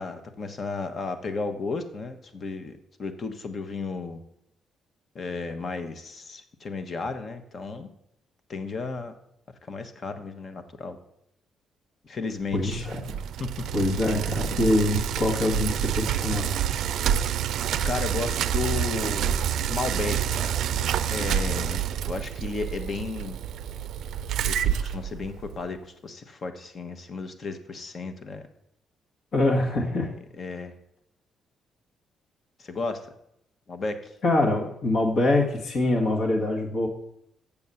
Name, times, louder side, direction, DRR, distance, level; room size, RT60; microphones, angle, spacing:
voice 1, 0.0-2.7 3.0-4.2 5.1-7.9 8.5-9.1 9.6-11.0 12.0-12.9 13.4-13.5 17.8-19.3 19.7-20.6 21.1-23.4 24.4-28.4 29.8-30.7 32.6-33.1 33.7-34.1, left 4 dB, 45° left, 8 dB, 1.1 m, -34 dB
voice 2, 12.5-13.2 13.7-16.6 29.3-30.1 34.2-36.9, left 2 dB, 60° left, 1 dB, 1.7 m, -24 dB
Bicycle, 12.5-25.7, right 9 dB, 75° right, 0.4 m, -28 dB
7.3 x 7.0 x 6.9 m, 0.78 s
cardioid pair, 90°, 0 cm